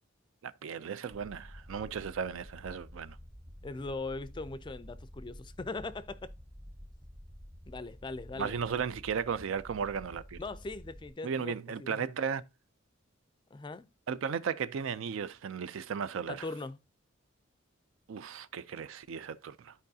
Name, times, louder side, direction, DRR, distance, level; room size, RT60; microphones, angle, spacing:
voice 1, 0.4-3.2 8.4-10.4 11.2-12.4 14.1-16.5 18.1-19.7, right 6 dB, 70° right, 0.4 m, -35 dB
sound 1, 1.1-11.1, equal, 15° right, 0.7 m, -50 dB
voice 2, 3.6-6.3 7.7-8.6 10.4-11.5 11.8-12.0 13.5-13.9 16.3-16.8, left 3 dB, 20° left, 0.4 m, -40 dB
13.0 x 4.6 x 2.7 m
head